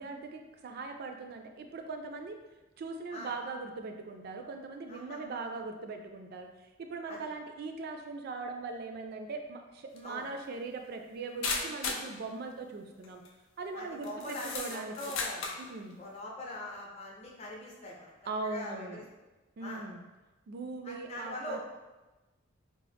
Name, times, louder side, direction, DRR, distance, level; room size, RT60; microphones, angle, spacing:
voice 1, 0.0-2.4 2.8-6.5 6.8-13.2 13.6-15.0 15.6-16.0 18.3-19.0 19.6-20.0 20.5-21.6, right 3 dB, 50° right, 5 dB, 0.3 m, -40 dB
voice 2, 4.9-5.6 7.1-7.2 10.0-10.2 13.7-15.4 16.0-18.1 18.4-19.0 19.6-19.8 20.8-21.6, left 1 dB, 30° left, -3 dB, 0.6 m, -42 dB
sound 1, 10.0-10.1 11.4-12.1 13.0-13.3 14.0-15.7, left 4 dB, 75° left, 0.4 m, -35 dB
3.6 x 2.0 x 3.4 m, 1.1 s
head